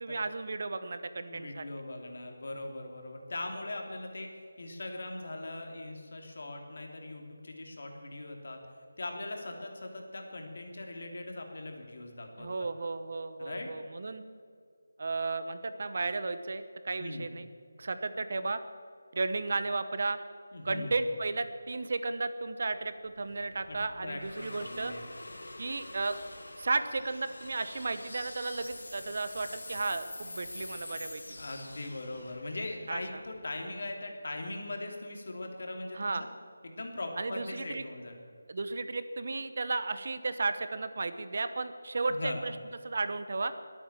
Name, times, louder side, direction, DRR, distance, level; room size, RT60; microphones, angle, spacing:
voice 1, 0.0-1.7 12.4-14.2 15.0-17.5 17.8-18.6 19.1-20.2 20.6-24.9 25.6-26.2 26.6-31.2 32.9-33.0 35.9-36.3 37.2-37.8 38.5-42.6 42.8-43.5, right 3 dB, 50° right, 11 dB, 1.0 m, -34 dB
voice 2, 1.2-4.3 4.6-8.6 9.0-12.5 13.4-13.7 17.0-17.3 20.5-21.0 23.6-25.0 31.3-36.3 36.6-38.2 42.1-42.5, left 2 dB, 55° left, 2 dB, 3.1 m, -40 dB
sound 1, 22.7-33.9, left 2 dB, 75° left, 2.6 m, -46 dB
21.5 x 9.0 x 7.4 m, 2.2 s
figure-of-eight pair, 170°, 0 cm